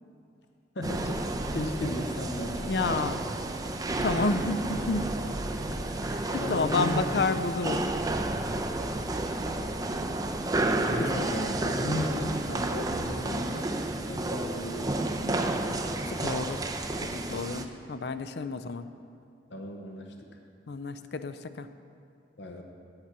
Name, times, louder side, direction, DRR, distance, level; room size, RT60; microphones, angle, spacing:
voice 1, 0.7-3.1 4.0-4.1 4.3-4.4 6.4-7.5 10.9-13.8 14.1-15.7 19.5-20.4 22.4-22.6, left 1 dB, 85° left, 3 dB, 0.9 m, -35 dB
sound 1, 0.8-17.6, right 2 dB, 20° right, 0.5 m, -31 dB
voice 2, 2.7-3.2 4.0-5.1 6.0-7.8 16.1-16.7 17.0-18.9 20.7-21.7, left 3 dB, 65° left, 11 dB, 0.5 m, -30 dB
8.8 x 6.0 x 8.2 m, 2.4 s
head